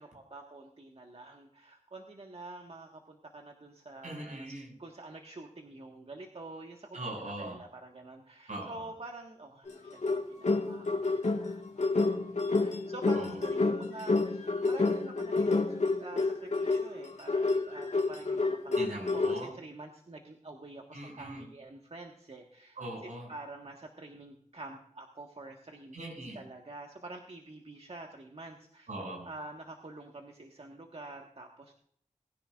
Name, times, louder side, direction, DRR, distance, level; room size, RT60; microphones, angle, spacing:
voice 1, 0.0-12.2 12.6-25.9 26.3-28.9 29.2-31.7, right 2 dB, 50° right, 2 dB, 1.6 m, -47 dB
voice 2, 4.0-4.7 6.9-7.6 8.5-8.9 13.1-13.3 18.8-19.5 20.9-21.5 22.8-23.3 25.9-26.4 28.9-29.3, right 1 dB, 80° right, 0 dB, 6.4 m, -40 dB
sound 1, 9.7-19.5, left 3 dB, 65° left, 1.7 m, -29 dB
21.0 x 10.5 x 2.5 m, 0.65 s
cardioid pair, 45°, 13 cm